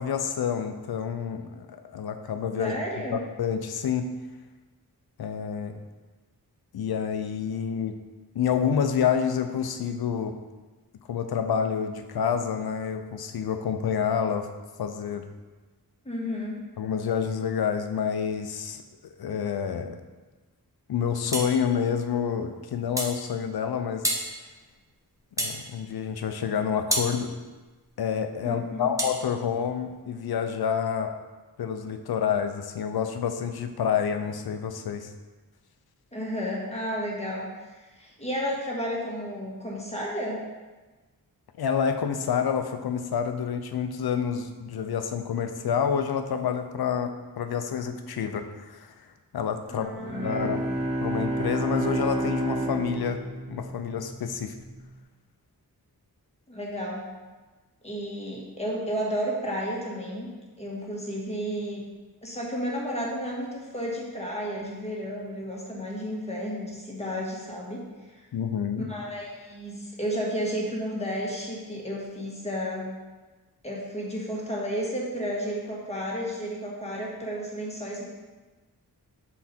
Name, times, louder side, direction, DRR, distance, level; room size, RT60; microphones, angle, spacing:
voice 1, 0.0-1.7 1.9-2.8 3.4-4.1 5.2-5.8 6.7-7.9 8.3-10.3 11.1-14.5 14.8-15.2 16.8-20.0 20.9-24.0 25.4-27.3 28.0-31.1 31.6-35.1 41.6-48.9 49.3-49.9 50.2-50.6 51.0-53.2 53.5-54.5 68.3-68.8, left 7 dB, 75° left, 7 dB, 0.6 m, -28 dB
voice 2, 2.6-3.2 16.0-16.6 28.4-28.9 36.1-40.4 49.7-50.6 56.5-57.0 57.8-60.3 60.6-61.8 62.2-67.8 68.8-72.9 73.6-78.0, equal, 15° left, -4 dB, 1.6 m, -32 dB
sound 1, 21.3-21.6 23.0-23.2 24.0-24.3 25.4-25.6 26.9-27.1 29.0-29.2, right 1 dB, 10° right, 0.9 m, -27 dB
Bowed string instrument, 50.0-54.5, right 1 dB, 35° right, 1.8 m, -30 dB
6.2 x 4.1 x 4.3 m, 1.3 s
wide cardioid pair, 75°, 37 cm